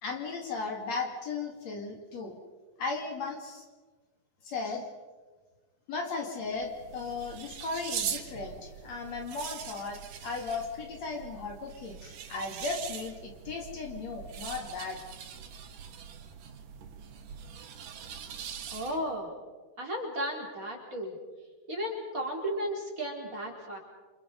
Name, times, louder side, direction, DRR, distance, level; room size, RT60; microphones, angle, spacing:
voice 1, 0.0-2.4 2.8-3.7 4.4-4.9 5.9-15.0, left 4 dB, 60° left, 2 dB, 3.6 m, -36 dB
sound 1, 6.5-19.2, right 8 dB, 90° right, 3.2 m, -42 dB
voice 2, 18.7-19.3 19.8-21.2 21.7-23.8, equal, 25° right, -1 dB, 4.7 m, -34 dB
29.0 x 27.5 x 5.3 m, 1.3 s
omnidirectional pair, 3.6 m